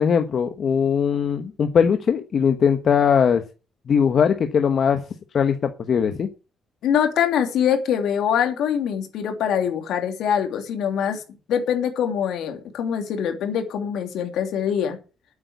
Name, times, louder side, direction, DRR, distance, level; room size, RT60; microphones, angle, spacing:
voice 1, 0.0-3.4 3.9-5.0 5.3-6.3, left 7 dB, 55° left, 7 dB, 1.2 m, -20 dB
voice 2, 6.8-11.2 11.5-15.0, left 8 dB, 80° left, 5 dB, 2.9 m, -23 dB
8.8 x 8.3 x 8.2 m, 0.34 s
cardioid pair, 90°, 0 cm